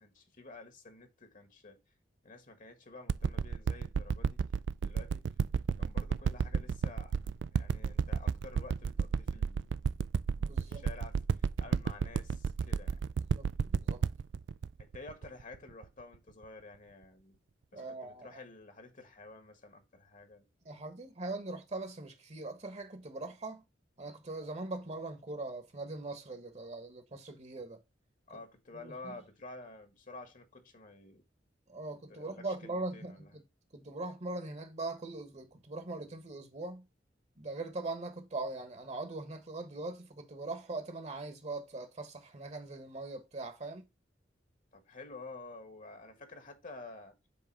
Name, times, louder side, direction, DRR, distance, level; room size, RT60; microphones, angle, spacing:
voice 1, 0.0-1.8 2.2-4.4 4.8-5.3 5.7-7.2 7.5-9.7 10.6-11.2 11.6-13.0 14.8-17.4 17.7-20.5 28.3-31.2 31.9-33.3 44.7-47.2, left 3 dB, 45° left, 1.4 m, -50 dB
sound 1, 3.1-15.8 16.4-16.5, right 6 dB, 70° right, 0.4 m, -31 dB
voice 2, 10.4-10.8 13.3-14.0 17.7-18.4 20.6-23.6 24.0-27.8 28.3-28.4 28.7-29.1 31.7-33.4 33.7-36.8 37.4-43.8, right 2 dB, 35° right, 1.3 m, -41 dB
7.5 x 3.5 x 4.6 m
head